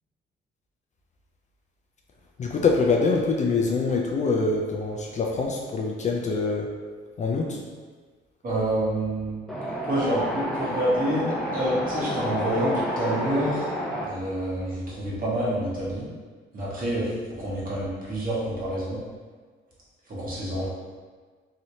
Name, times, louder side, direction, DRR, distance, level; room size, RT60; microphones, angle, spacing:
voice 1, 2.4-6.7 7.2-7.6, left 4 dB, 35° left, 0 dB, 0.4 m, -24 dB
voice 2, 8.4-9.4 9.7-13.7 14.0-16.1 16.5-19.0 20.1-20.7, right 1 dB, 45° right, -7 dB, 1.3 m, -27 dB
Wind, 9.5-14.0, equal, 5° left, 0.8 m, -30 dB
3.1 x 2.7 x 2.7 m, 1.5 s
cardioid pair, 90°, 20 cm